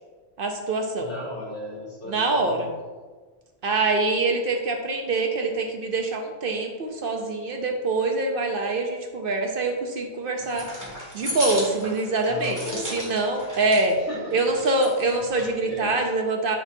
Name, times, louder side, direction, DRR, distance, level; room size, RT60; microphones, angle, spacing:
voice 1, 0.4-1.1 2.1-2.7 3.6-10.7 11.1-12.6 12.9-14.0 14.3-16.6, right 3 dB, 60° right, 4 dB, 0.7 m, -25 dB
voice 2, 1.0-2.7 12.2-13.1 13.9-14.4 15.7-15.9, left 1 dB, 80° left, -6 dB, 2.2 m, -36 dB
sound 1, 10.4-13.9 14.3-15.5, left 1 dB, 15° right, 1.7 m, -35 dB
9.2 x 4.0 x 2.7 m, 1.4 s
omnidirectional pair, 1.2 m